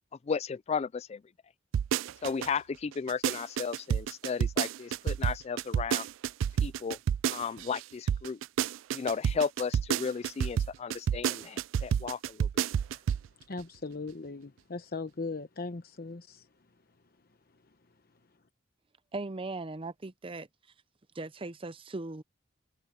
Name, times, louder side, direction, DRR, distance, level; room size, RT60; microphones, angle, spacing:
voice 1, 0.3-1.2 2.2-6.1 6.6-7.0 7.3-8.4 8.9-12.6, left 6 dB, 35° left, 0.3 m, -34 dB
sound 1, 1.7-2.5 2.9-7.8 8.1-13.3 13.6-13.7, right 8 dB, 90° right, 0.3 m, -29 dB
voice 2, 13.4-16.5 17.5-17.8, left 3 dB, 50° left, 0.9 m, -39 dB
voice 3, 19.1-20.5 21.1-22.2, right 2 dB, 30° right, 0.6 m, -38 dB
head